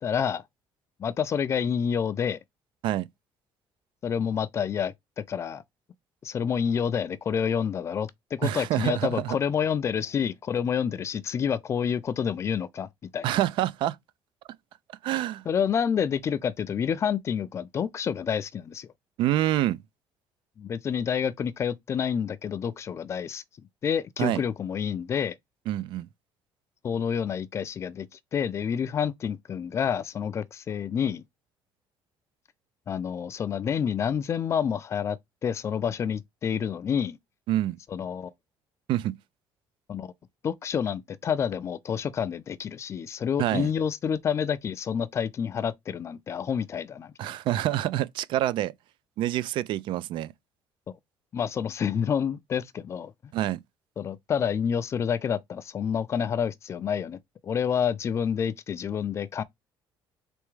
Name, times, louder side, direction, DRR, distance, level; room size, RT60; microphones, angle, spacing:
voice 1, 0.0-0.4 1.0-2.4 4.0-5.6 6.2-13.4 15.5-18.9 20.6-23.4 23.8-25.4 26.8-31.2 32.9-35.2 35.4-37.2 37.9-38.3 39.9-40.1 40.4-47.1 51.3-53.1 54.0-59.4, left 7 dB, 30° left, 0.4 m, -28 dB
voice 2, 8.4-9.4 13.2-14.0 15.0-15.4 19.2-19.8 24.2-24.4 25.7-26.1 37.5-37.8 38.9-39.2 43.4-43.7 47.2-48.7 49.2-50.3 53.3-53.6, right 13 dB, 65° right, 0.4 m, -26 dB
4.0 x 3.4 x 3.1 m
cardioid pair, 155°, 9 cm